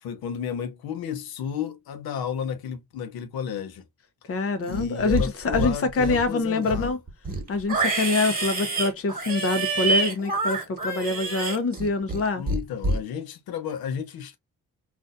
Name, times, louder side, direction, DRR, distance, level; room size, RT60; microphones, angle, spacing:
voice 1, 0.0-3.9 4.7-7.0 12.4-14.4, left 8 dB, 85° left, 0.8 m, -32 dB
voice 2, 4.3-7.0 7.5-12.4, left 3 dB, 40° left, 0.8 m, -25 dB
Livestock farm animals working animals, 4.6-5.3 5.5-6.3 6.6-12.2 12.5-13.0, right 2 dB, 25° right, 1.4 m, -27 dB
3.9 x 2.5 x 2.5 m
cardioid pair, 120°, 36 cm